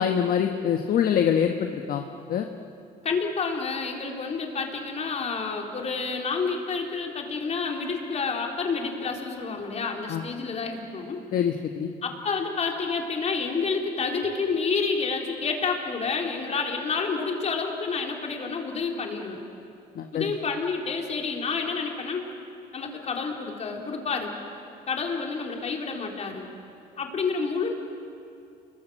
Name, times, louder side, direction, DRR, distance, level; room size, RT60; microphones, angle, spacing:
voice 1, 0.0-2.0 2.3-2.5 10.1-10.2 11.3-11.9 19.9-20.3, left 8 dB, 60° left, 5 dB, 1.3 m, -24 dB
voice 2, 3.0-11.2 12.0-19.4 20.1-22.3 22.7-24.3 24.9-26.5 27.0-27.7, left 4 dB, 40° left, 1 dB, 4.0 m, -29 dB
29.5 x 22.0 x 7.7 m, 2.6 s
cardioid pair, 110°, 17 cm